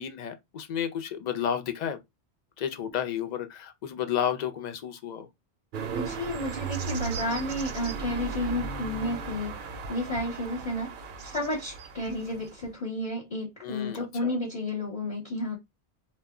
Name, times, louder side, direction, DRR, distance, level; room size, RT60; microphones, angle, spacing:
voice 1, 0.0-2.0 2.6-5.3 13.6-14.3, left 9 dB, 55° left, 0.5 m, -32 dB
sound 1, 5.7-12.7, right 5 dB, 60° right, 0.6 m, -36 dB
voice 2, 5.9-9.6 9.9-10.9 11.2-15.6, left 1 dB, 35° left, 0.8 m, -31 dB
2.1 x 2.1 x 3.5 m
omnidirectional pair, 1.1 m